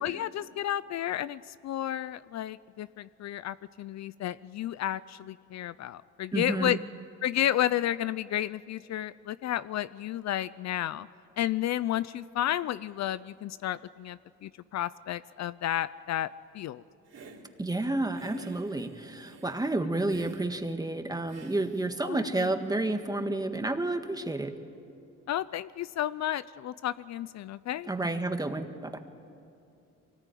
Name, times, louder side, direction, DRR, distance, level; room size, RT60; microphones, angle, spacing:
voice 1, 0.0-6.8 7.2-11.1 11.4-16.8 22.0-22.5 25.3-27.9, left 12 dB, 60° left, 17 dB, 0.5 m, -32 dB
voice 2, 6.3-6.8 17.6-24.5 27.9-29.0, right 2 dB, 10° right, 6 dB, 1.7 m, -30 dB
Hiss, 17.1-17.4 18.1-19.6 20.1-20.5 21.3-22.0, right 4 dB, 55° right, 4.0 m, -50 dB
23.5 x 19.0 x 9.2 m, 2.6 s
cardioid pair, 90°, 30 cm